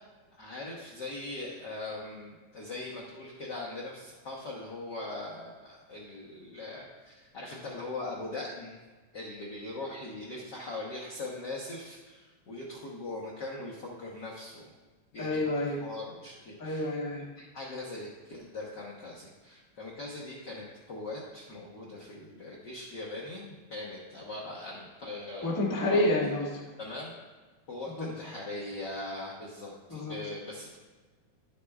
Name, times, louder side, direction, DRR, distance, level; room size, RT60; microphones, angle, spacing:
voice 1, 0.4-8.8 9.1-14.7 15.1-15.5 15.8-16.9 17.4-26.0 26.8-27.1 27.7-30.8, left 2 dB, 70° left, -5 dB, 1.0 m, -41 dB
voice 2, 15.2-15.8 16.6-17.3 25.4-26.6 28.0-28.1 29.9-30.1, left 1 dB, 30° left, -5 dB, 0.3 m, -29 dB
11.0 x 8.3 x 2.3 m, 1.3 s
omnidirectional pair, 3.4 m